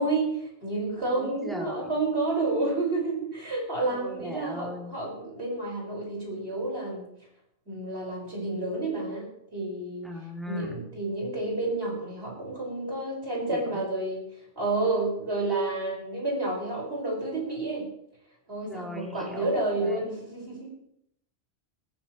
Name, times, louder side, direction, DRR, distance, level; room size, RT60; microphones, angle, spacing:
voice 1, 0.0-7.1 7.7-10.1 10.5-17.9 18.5-20.7, right 2 dB, 60° right, -3 dB, 6.3 m, -30 dB
voice 2, 1.1-1.9 3.9-4.9 10.0-10.8 13.5-13.8 18.6-20.1, left 2 dB, ahead, -2 dB, 3.0 m, -39 dB
20.5 x 15.0 x 3.3 m, 0.73 s
omnidirectional pair, 1.2 m